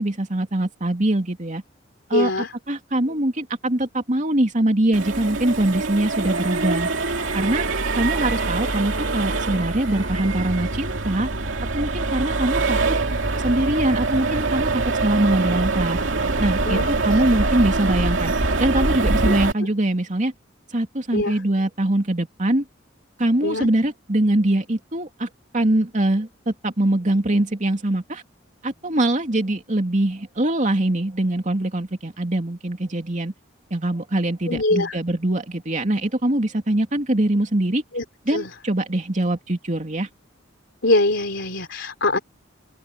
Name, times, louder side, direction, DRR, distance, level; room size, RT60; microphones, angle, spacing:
voice 1, 0.0-1.6 2.1-2.3 2.7-7.7 8.0-11.3 11.7-12.8 13.4-16.0 16.4-18.3 18.6-20.3 20.7-22.6 23.2-25.3 25.5-28.2 28.6-33.3 33.7-37.8 38.3-40.1, right 1 dB, 40° right, 2.7 m, -23 dB
voice 2, 2.1-2.5 16.7-17.2 21.1-21.3 23.4-23.7 34.5-34.9 37.9-38.5 40.8-42.2, left 2 dB, 65° left, 3.6 m, -23 dB
Accelerating revving vroom, 4.9-19.5, right 3 dB, 75° right, 2.6 m, -24 dB
open air
head